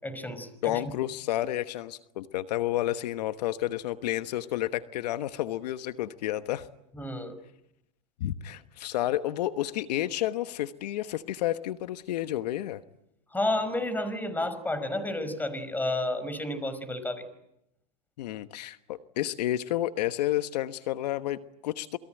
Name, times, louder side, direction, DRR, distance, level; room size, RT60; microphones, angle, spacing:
voice 1, 0.0-0.7 6.9-7.3 13.3-17.3, left 1 dB, 10° left, 12 dB, 5.3 m, -31 dB
voice 2, 0.6-6.7 8.2-12.8 18.2-22.0, left 14 dB, 75° left, 11 dB, 1.2 m, -30 dB
28.0 x 22.0 x 9.1 m, 0.82 s
hypercardioid pair, 110°, 21 cm